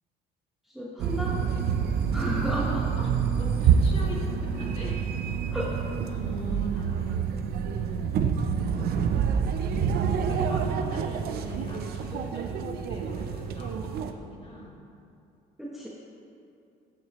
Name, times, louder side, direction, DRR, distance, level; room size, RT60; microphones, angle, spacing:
voice 1, 0.7-1.4 2.1-2.9 5.5-5.7 15.6-15.9, equal, ahead, -5 dB, 1.0 m, -32 dB
sound 1, 1.0-14.1, right 7 dB, 70° right, 0.6 m, -27 dB
voice 2, 3.4-5.0 6.0-8.0 8.4-9.5 10.2-14.8, left 1 dB, 35° left, -4 dB, 2.2 m, -42 dB
15.0 x 5.9 x 3.0 m, 2.6 s
cardioid pair, 110°, 17 cm